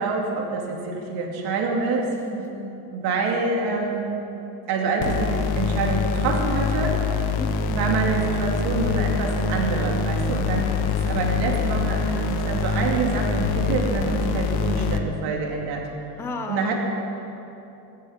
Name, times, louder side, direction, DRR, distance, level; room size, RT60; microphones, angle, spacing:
voice 1, 0.0-2.1 2.9-4.1 4.7-7.0 7.7-15.9 16.5-16.7, right 4 dB, 55° right, 0 dB, 2.6 m, -26 dB
voice 2, 2.1-2.9 7.4-7.9 11.9-12.4 14.2-14.3 16.2-16.7, left 2 dB, 5° left, 5 dB, 0.4 m, -35 dB
sound 1, 5.0-15.0, left 5 dB, 55° left, 1.0 m, -25 dB
15.0 x 8.8 x 7.2 m, 2.9 s
cardioid pair, 155°, 47 cm